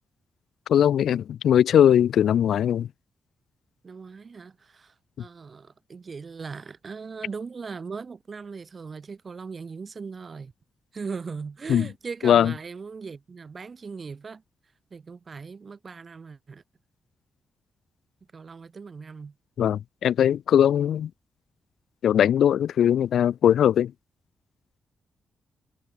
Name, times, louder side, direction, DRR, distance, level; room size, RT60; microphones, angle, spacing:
voice 1, 0.7-2.9 11.7-11.9 12.2-12.5 19.6-21.1 22.0-23.9, left 10 dB, 80° left, 0.7 m, -20 dB
voice 2, 3.8-10.5 10.9-14.4 14.9-16.6 18.3-19.4, right 5 dB, 40° right, 1.8 m, -39 dB
cardioid pair, 90°, 0 cm